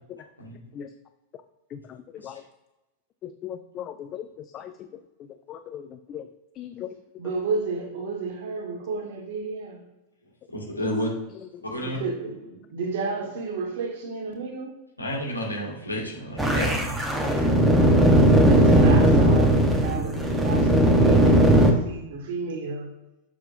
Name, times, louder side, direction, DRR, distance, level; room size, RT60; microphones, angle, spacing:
voice 1, 3.4-4.2 4.5-4.7 5.5-6.2 6.6-6.9, left 10 dB, 30° left, 0.4 m, -37 dB
voice 2, 7.2-9.8 11.8-14.8 18.4-22.9, right 4 dB, 55° right, 1.5 m, -32 dB
voice 3, 10.5-11.1 11.7-12.0 15.0-17.1, equal, 85° left, 1.9 m, -30 dB
sound 1, 16.4-21.7, right 1 dB, 10° right, 1.0 m, -18 dB
7.1 x 6.5 x 2.6 m
figure-of-eight pair, 90°, 0 cm